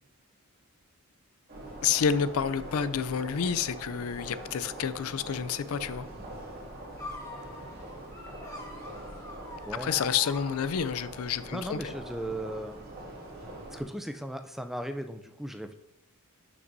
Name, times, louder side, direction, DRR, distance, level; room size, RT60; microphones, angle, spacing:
sound 1, 1.5-13.8, right 1 dB, 45° right, 2.3 m, -43 dB
voice 1, 1.8-6.1 9.8-11.9, left 7 dB, 70° left, 0.4 m, -29 dB
sound 2, 7.0-11.1, left 1 dB, 15° left, 1.4 m, -44 dB
voice 2, 11.5-12.8 13.7-15.7, right 1 dB, ahead, 0.4 m, -37 dB
12.0 x 6.1 x 2.7 m
head